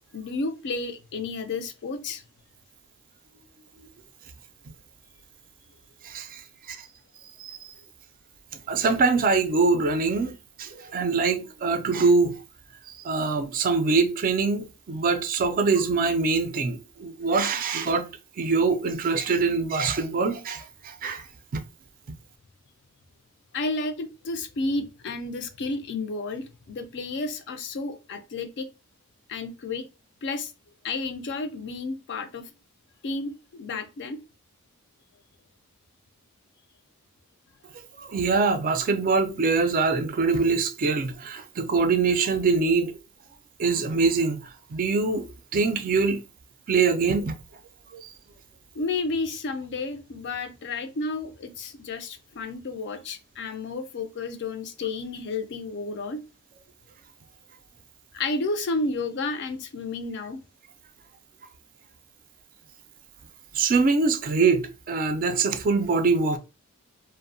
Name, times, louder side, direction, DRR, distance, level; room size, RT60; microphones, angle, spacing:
voice 1, 0.1-2.2 23.5-28.7 29.3-29.8 30.2-30.5 30.8-32.5 33.0-34.2 48.7-56.2 58.1-60.4, left 3 dB, 55° left, 0.4 m, -31 dB
voice 2, 6.0-6.4 6.7-6.8 7.4-7.6 8.7-10.3 10.6-12.3 13.0-18.1 18.4-21.2 21.5-21.6 38.0-42.9 43.6-44.4 44.7-45.3 45.5-46.2 46.7-47.3 47.9-48.1 63.5-66.4, right 4 dB, 40° right, 0.3 m, -23 dB
2.6 x 2.0 x 2.5 m
head